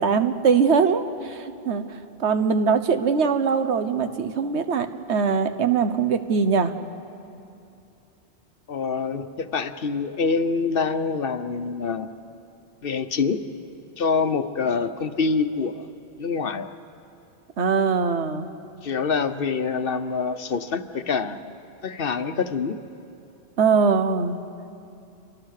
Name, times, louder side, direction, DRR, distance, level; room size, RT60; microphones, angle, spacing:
voice 1, 0.0-1.8 2.2-6.7 17.6-18.5 23.6-24.4, right 5 dB, 90° right, 9 dB, 1.4 m, -22 dB
voice 2, 8.7-12.1 12.8-13.4 14.0-15.9 16.2-16.7 18.8-21.5 21.8-22.8, left 5 dB, 60° left, 9 dB, 1.1 m, -25 dB
28.5 x 24.0 x 6.6 m, 2.6 s
omnidirectional pair, 1.1 m